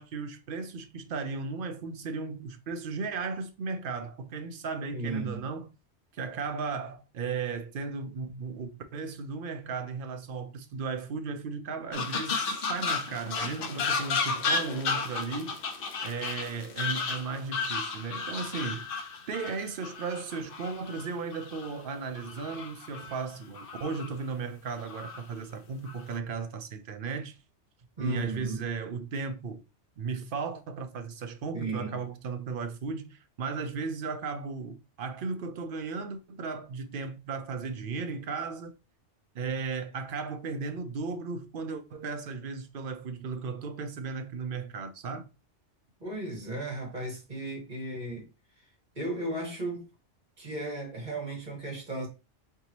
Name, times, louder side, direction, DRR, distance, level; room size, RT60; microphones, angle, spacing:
voice 1, 0.0-5.7 6.1-15.6 16.0-18.9 19.3-27.4 28.0-29.6 30.0-38.7 39.3-45.3, right 4 dB, 55° right, 0.7 m, -35 dB
voice 2, 4.9-5.4 28.0-28.6 31.5-32.0 46.0-48.3 48.9-49.9 50.4-52.1, right 1 dB, 40° right, 1.7 m, -35 dB
sound 1, 11.9-21.7 22.2-23.2 23.5-24.1 24.7-25.2 25.9-26.2, left 4 dB, 55° left, 0.8 m, -33 dB
3.9 x 3.5 x 2.9 m
omnidirectional pair, 1.2 m